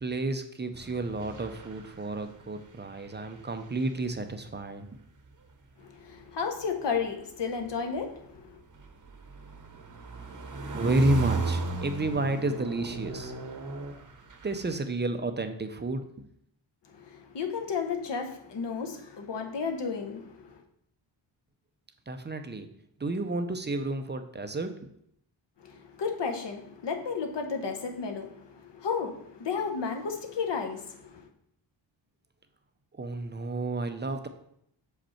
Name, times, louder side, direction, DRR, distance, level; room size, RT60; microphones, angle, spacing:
voice 1, 0.0-5.0 10.7-13.3 14.4-16.3 22.1-22.7 23.0-24.9 33.0-34.3, right 2 dB, 25° right, 7 dB, 0.4 m, -31 dB
sound 1, 0.7-2.7 2.9-4.2 5.2-5.5 7.6-14.8, right 4 dB, 40° right, 0.8 m, -36 dB
voice 2, 5.8-8.6 16.9-20.6 25.6-31.3, left 5 dB, 60° left, 4 dB, 1.0 m, -33 dB
6.6 x 5.1 x 4.3 m, 0.72 s
wide cardioid pair, 165°, 47 cm